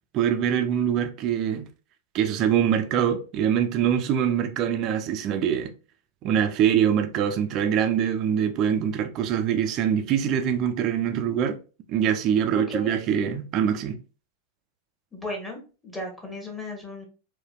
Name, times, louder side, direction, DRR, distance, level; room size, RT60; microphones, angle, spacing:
voice 1, 0.1-1.7 2.1-5.7 6.2-11.6 11.9-14.0, right 9 dB, 35° right, 0.4 m, -24 dB
voice 2, 12.5-13.0 15.1-17.1, left 2 dB, 10° left, 1.1 m, -35 dB
3.9 x 2.2 x 2.3 m
figure-of-eight pair, 90°, 0 cm